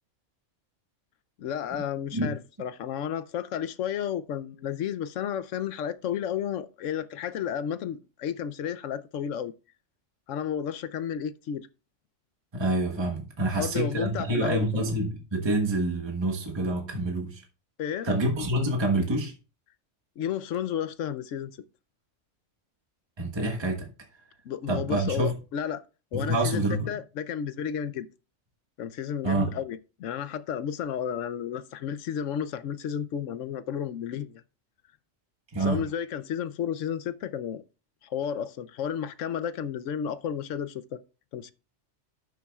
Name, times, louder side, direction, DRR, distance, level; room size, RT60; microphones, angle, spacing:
voice 1, 1.4-9.5 10.3-11.7 13.4-14.8 17.8-18.1 20.2-21.6 24.4-25.8 26.1-28.1 28.8-34.4 35.6-37.6 38.0-41.0 41.3-41.5, left 8 dB, 85° left, 1.0 m, -32 dB
voice 2, 12.5-17.4 18.0-19.3 23.2-23.9 24.7-25.3 26.1-26.9 29.2-29.5 35.5-35.8, right 1 dB, 20° right, 1.3 m, -27 dB
12.5 x 7.1 x 2.4 m
omnidirectional pair, 1.3 m